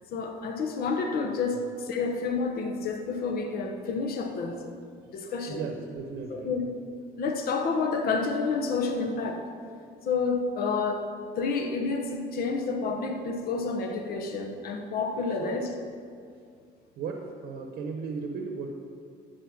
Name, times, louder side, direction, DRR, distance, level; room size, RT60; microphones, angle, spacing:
voice 1, 0.1-4.5 5.1-5.7 6.3-6.6 7.2-9.4 10.0-11.1 11.4-15.7, left 4 dB, 65° left, 3 dB, 1.1 m, -29 dB
voice 2, 5.4-6.5 12.9-13.0 15.4-15.6 16.3-16.4 17.0-18.7, right 5 dB, 75° right, 2 dB, 1.0 m, -36 dB
12.0 x 4.4 x 7.7 m, 2.2 s
cardioid pair, 110°, 17 cm